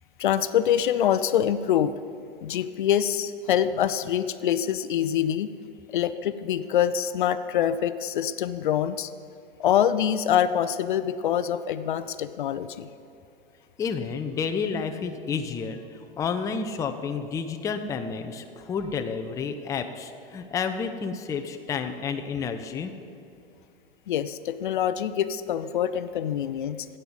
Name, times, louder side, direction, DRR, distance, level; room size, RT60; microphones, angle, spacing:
voice 1, 0.2-1.9 2.4-5.5 5.9-9.1 9.6-12.9 24.1-26.9, left 10 dB, 55° left, 13 dB, 0.6 m, -25 dB
voice 2, 13.8-22.9, left 5 dB, 10° left, 6 dB, 0.5 m, -30 dB
16.0 x 5.5 x 8.0 m, 2.5 s
figure-of-eight pair, 95°, 30 cm